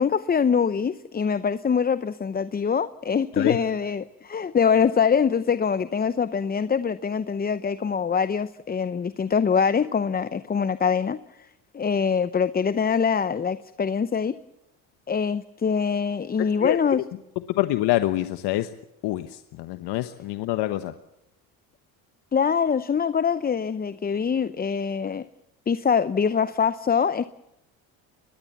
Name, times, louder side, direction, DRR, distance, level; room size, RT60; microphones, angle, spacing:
voice 1, 0.0-11.2 11.7-14.4 15.1-17.0 22.3-25.3 25.7-27.3, left 6 dB, 20° left, 14 dB, 0.7 m, -24 dB
voice 2, 16.4-17.0 17.5-18.7 19.0-20.9, left 16 dB, 65° left, 10 dB, 1.2 m, -26 dB
23.5 x 20.5 x 7.3 m, 0.86 s
supercardioid pair, 85°, 43 cm